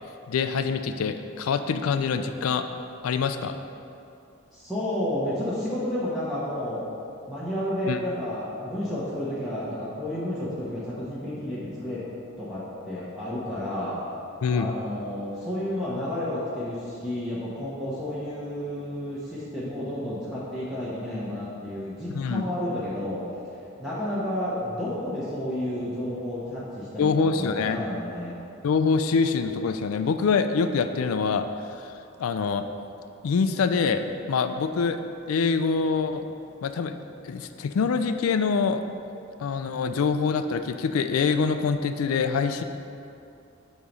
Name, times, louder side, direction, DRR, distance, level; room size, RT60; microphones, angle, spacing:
voice 1, 0.3-2.6 3.0-3.5 7.9-8.0 14.4-14.7 22.1-22.4 27.0-27.8 28.6-31.4 32.2-32.6 33.2-34.0 34.3-35.0 35.3-36.2 36.6-36.9 37.2-38.8 39.4-42.6, left 5 dB, 85° left, 9 dB, 0.4 m, -25 dB
voice 2, 4.5-6.8 7.3-12.0 12.4-14.0 14.5-23.2 23.8-28.3, left 1 dB, ahead, -10 dB, 0.9 m, -31 dB
8.3 x 3.0 x 5.3 m, 2.7 s
head